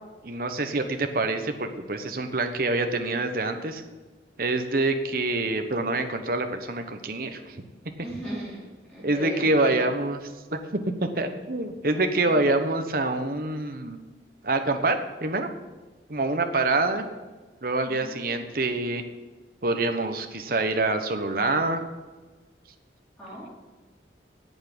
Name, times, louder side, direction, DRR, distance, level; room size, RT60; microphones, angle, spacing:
voice 1, 0.2-3.8 4.4-7.6 8.3-8.4 9.0-10.2 10.5-14.0 14.4-15.5 16.1-17.0 17.6-19.0 19.6-21.8, right 2 dB, 55° right, 6 dB, 1.1 m, -26 dB
voice 2, 8.0-9.8 11.9-12.0 17.9-18.4 23.2-23.5, equal, 5° left, -9 dB, 3.3 m, -38 dB
8.6 x 8.5 x 8.8 m, 1.3 s
head